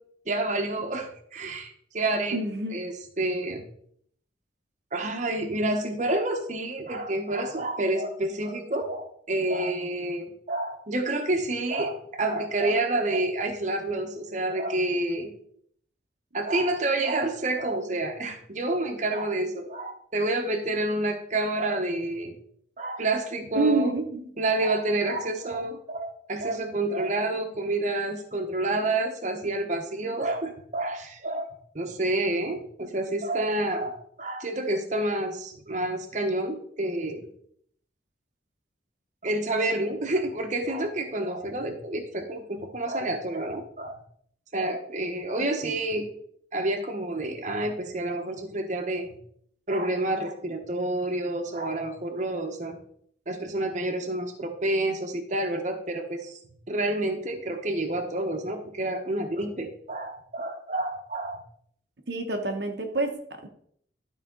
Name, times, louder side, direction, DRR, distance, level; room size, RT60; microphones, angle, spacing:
voice 1, 0.3-2.4 2.7-3.6 4.9-15.3 16.3-22.3 22.8-23.9 24.4-37.3 39.2-44.0 44.5-46.0 46.5-49.1 49.7-52.8 53.3-56.4 56.7-61.4, right 2 dB, 40° right, 5 dB, 1.1 m, -29 dB
voice 2, 2.3-2.8 23.5-24.3 45.6-45.7 62.1-63.5, right 2 dB, 60° right, 4 dB, 1.0 m, -27 dB
12.0 x 4.9 x 3.8 m, 0.64 s
head